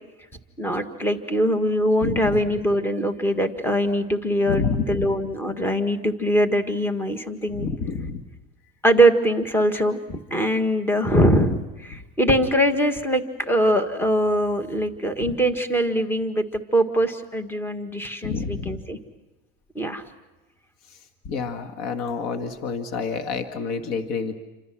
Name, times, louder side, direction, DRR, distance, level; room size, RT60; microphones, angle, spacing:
voice 1, 0.6-7.7 8.8-19.0 19.7-20.0, equal, 5° left, 7 dB, 1.7 m, -22 dB
voice 2, 2.0-2.4 4.5-5.1 7.5-8.2 18.2-18.8 21.3-24.3, left 5 dB, 60° left, 6 dB, 2.0 m, -28 dB
29.5 x 25.5 x 6.2 m, 1.1 s
supercardioid pair, 130°, 29 cm